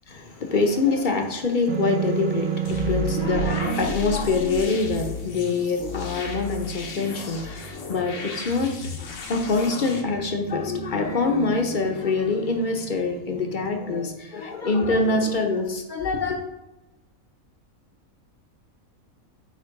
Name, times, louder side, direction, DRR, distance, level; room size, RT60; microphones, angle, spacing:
voice 1, 0.2-16.4, left 3 dB, 40° left, 3 dB, 0.8 m, -25 dB
sound 1, 1.7-3.9, right 10 dB, 70° right, 1.0 m, -27 dB
sound 2, 2.6-10.0, left 4 dB, 65° left, 1.2 m, -34 dB
8.3 x 3.0 x 4.7 m, 1.0 s
omnidirectional pair, 1.5 m